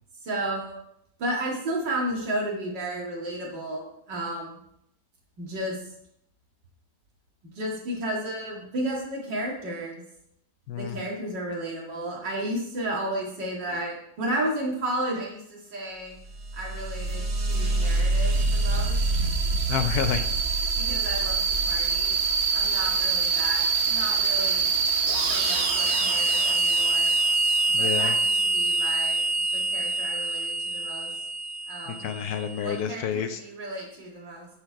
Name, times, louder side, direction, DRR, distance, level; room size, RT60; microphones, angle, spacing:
voice 1, 0.2-0.8 1.2-4.5 5.4-5.8 7.6-10.0 10.7-16.2 16.5-19.1 20.8-22.2 22.5-24.7 25.3-27.1 27.7-31.1 31.7-32.0 32.6-34.5, right 1 dB, 85° right, -2 dB, 2.6 m, -33 dB
voice 2, 10.7-11.0 19.7-20.2 27.7-28.2 31.9-33.4, left 8 dB, 70° left, 9 dB, 1.0 m, -29 dB
sound 1, 16.3-32.6, right 3 dB, 50° right, 0.9 m, -25 dB
9.7 x 4.4 x 4.7 m, 0.76 s
omnidirectional pair, 1.9 m